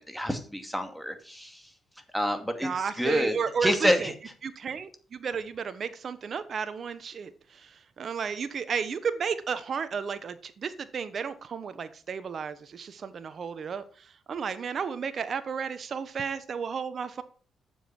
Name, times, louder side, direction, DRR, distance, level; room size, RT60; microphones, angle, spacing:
voice 1, 0.0-1.7 2.1-2.7 3.0-3.3 3.6-4.1, equal, ahead, 6 dB, 2.3 m, -27 dB
voice 2, 2.6-4.1 4.4-17.2, right 6 dB, 55° right, 13 dB, 1.1 m, -33 dB
9.9 x 7.4 x 6.0 m, 0.41 s
supercardioid pair, 65°, 0 cm